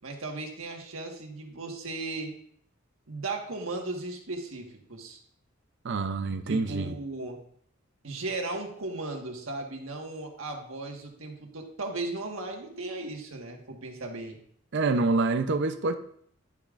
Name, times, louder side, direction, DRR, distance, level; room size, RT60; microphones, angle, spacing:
voice 1, 0.0-2.3 3.1-5.2 6.5-7.4 8.0-14.4, right 2 dB, 75° right, 1.6 m, -36 dB
voice 2, 5.8-6.9 14.7-16.0, right 3 dB, 60° right, 0.6 m, -26 dB
10.5 x 8.5 x 2.5 m
head